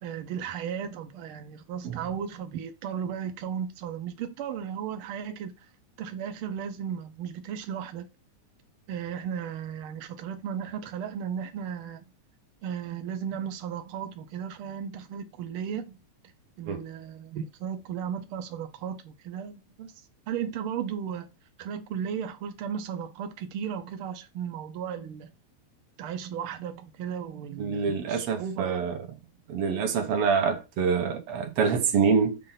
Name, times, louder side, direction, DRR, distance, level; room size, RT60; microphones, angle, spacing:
voice 1, 0.0-5.5 6.0-8.1 8.9-12.0 12.6-16.0 16.6-19.9 20.3-21.3 21.6-25.3 26.0-28.9, right 8 dB, 85° right, 1.2 m, -35 dB
voice 2, 27.6-29.0 29.5-32.4, right 6 dB, 65° right, 1.7 m, -26 dB
6.8 x 2.6 x 5.6 m
omnidirectional pair, 3.4 m